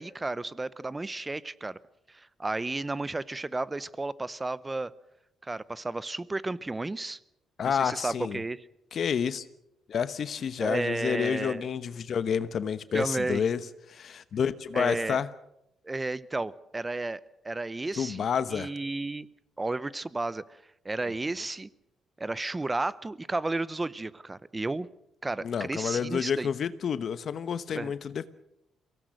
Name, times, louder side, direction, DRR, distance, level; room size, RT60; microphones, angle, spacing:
voice 1, 0.0-1.8 2.1-4.9 5.4-7.2 7.6-8.7 10.6-11.6 12.9-13.4 14.7-15.2 15.8-19.3 19.6-20.4 20.8-21.7 22.2-24.9 25.2-26.5 27.7-27.9, right 2 dB, 20° right, 18 dB, 0.8 m, -33 dB
voice 2, 7.6-8.4 8.9-9.5 9.9-13.6 13.9-15.3 18.0-18.7 25.4-28.3, left 7 dB, 55° left, 14 dB, 1.0 m, -29 dB
23.5 x 17.5 x 6.6 m, 0.84 s
cardioid pair, 90°, 0 cm